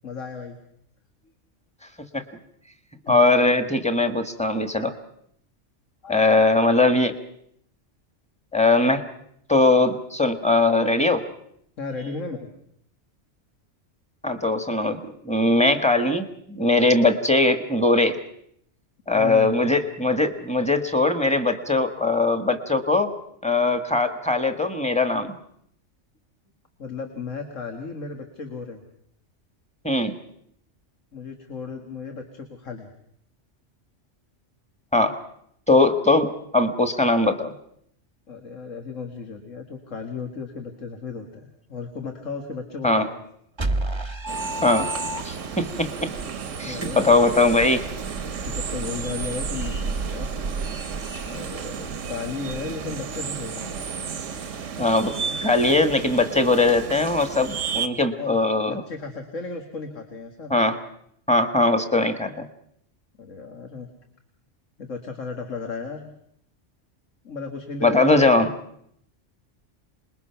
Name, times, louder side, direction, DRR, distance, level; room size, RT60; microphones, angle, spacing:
voice 1, 0.0-0.6 3.0-3.2 6.0-6.2 11.8-12.5 19.1-19.6 26.8-28.8 31.1-32.9 38.3-43.2 46.6-47.2 48.4-50.3 51.2-53.7 58.2-58.4 58.6-60.5 63.2-63.9 64.8-66.1 67.2-68.5, left 4 dB, 85° left, 5 dB, 2.1 m, -35 dB
voice 2, 3.1-4.9 6.1-7.1 8.5-9.0 9.5-11.2 14.2-18.2 19.1-23.1 23.4-25.3 29.8-30.1 34.9-35.1 35.7-36.3 36.5-37.5 42.8-43.0 44.6-44.9 45.2-45.9 46.6-47.8 54.8-58.8 60.5-60.8 61.3-62.5 67.8-68.5, left 2 dB, 5° left, 8 dB, 1.4 m, -20 dB
sound 1, 43.6-45.7, right 1 dB, 25° right, 1.0 m, -28 dB
sound 2, 44.3-57.9, right 6 dB, 80° right, 1.4 m, -32 dB
27.0 x 21.0 x 5.8 m, 0.71 s
omnidirectional pair, 1.3 m